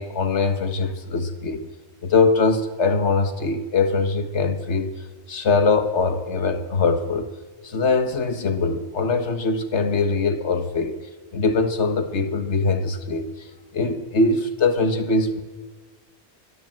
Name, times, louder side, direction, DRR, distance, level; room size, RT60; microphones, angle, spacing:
voice 1, 0.0-1.7 2.0-4.9 5.3-7.3 7.6-10.9 11.3-13.3 13.7-15.4, left 3 dB, 85° left, 9 dB, 1.8 m, -22 dB
23.5 x 18.5 x 7.7 m, 1.4 s
omnidirectional pair, 1.1 m